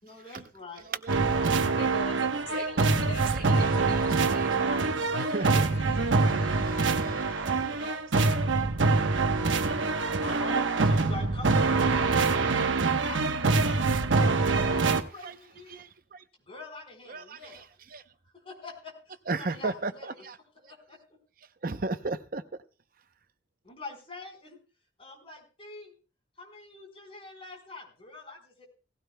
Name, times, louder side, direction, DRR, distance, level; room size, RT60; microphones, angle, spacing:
voice 1, 0.0-0.8 4.4-8.5 10.1-15.8 16.5-17.7 18.2-20.2 20.7-21.0 23.6-24.6 25.0-25.9 26.4-28.6, left 3 dB, 30° left, 4.4 m, -45 dB
voice 2, 0.8-1.5 2.5-2.9 3.3-4.8 5.1-5.7 6.2-8.4 9.3-9.5 11.6-11.9 12.2-12.9 13.2-13.4 13.7-13.8 14.2-15.4 15.7-16.2 17.1-18.0 19.3-20.4 21.6-22.4, right 3 dB, 45° right, 0.7 m, -38 dB
sound 1, 1.1-15.0, right 3 dB, 85° right, 1.0 m, -25 dB
voice 3, 1.7-4.1 4.4-4.5 5.4-7.4, left 1 dB, 70° left, 5.8 m, -42 dB
17.5 x 16.0 x 2.2 m
head